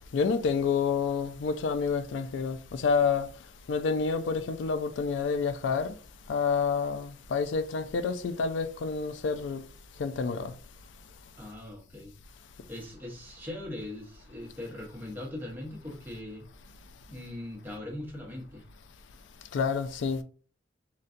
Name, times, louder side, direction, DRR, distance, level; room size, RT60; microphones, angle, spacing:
voice 1, 0.1-3.3 3.7-6.0 6.3-9.6 10.0-10.5 19.5-20.2, left 5 dB, 80° left, 0.3 m, -28 dB
voice 2, 11.4-12.1 12.7-16.4 17.1-18.7, left 1 dB, 10° right, 0.9 m, -40 dB
3.8 x 2.2 x 2.5 m
head